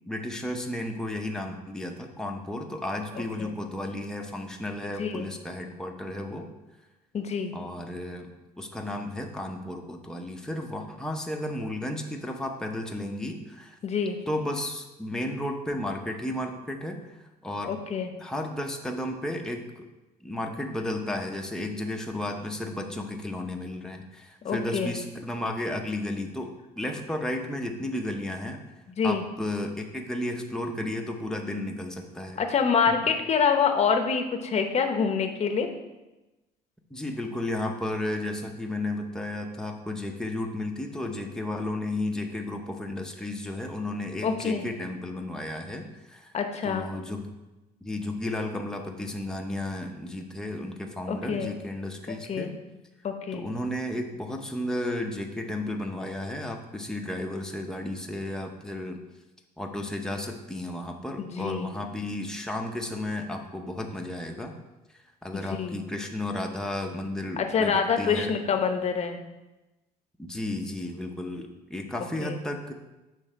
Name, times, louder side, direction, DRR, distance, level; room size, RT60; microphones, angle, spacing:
voice 1, 0.1-6.5 7.5-8.3 8.6-13.8 14.3-17.1 17.4-17.7 18.2-19.9 20.2-28.6 29.0-32.4 36.9-46.3 46.6-47.3 47.8-52.6 53.3-59.0 59.6-64.5 65.2-68.3 70.2-72.7, left 1 dB, 5° left, 2 dB, 0.7 m, -33 dB
voice 2, 3.1-3.5 5.0-5.3 7.1-7.5 13.8-14.2 17.7-18.1 24.4-24.9 29.0-29.2 32.4-35.7 44.2-44.6 46.3-46.9 51.1-51.5 52.1-52.5 53.0-53.5 61.2-61.7 65.3-65.8 67.4-69.2 72.2-72.4, left 6 dB, 40° left, 6 dB, 0.8 m, -26 dB
6.9 x 3.3 x 5.5 m, 1.0 s
cardioid pair, 110°, 17 cm